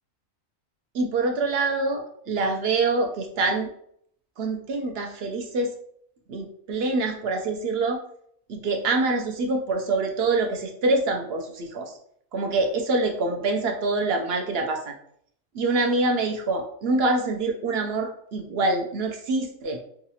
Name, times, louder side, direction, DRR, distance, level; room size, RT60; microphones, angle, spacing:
voice 1, 0.9-3.7 4.4-5.7 6.3-8.0 8.5-11.9 12.3-14.9 15.5-19.8, right 3 dB, 60° right, 3 dB, 0.7 m, -25 dB
4.8 x 2.3 x 2.8 m, 0.66 s
omnidirectional pair, 1.4 m